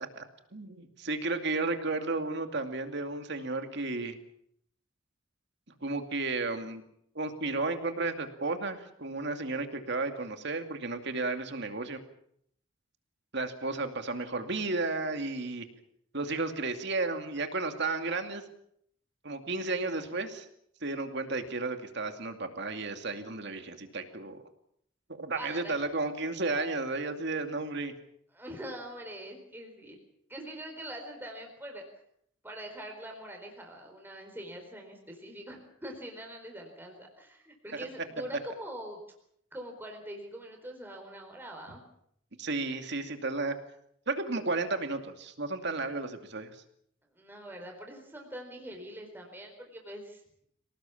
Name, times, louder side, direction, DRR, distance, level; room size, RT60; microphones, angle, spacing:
voice 1, 0.5-4.2 5.8-6.8 7.1-12.0 13.3-15.6 16.1-18.4 19.2-20.5 20.8-24.4 25.1-27.9 37.7-37.9 42.4-43.5 44.1-46.5, right 3 dB, 55° right, 6 dB, 2.5 m, -33 dB
voice 2, 25.3-25.8 28.3-30.0 30.3-31.8 32.4-39.0 39.5-41.8 47.1-50.2, right 1 dB, 10° right, 2 dB, 4.3 m, -43 dB
25.5 x 18.5 x 7.2 m, 0.71 s
head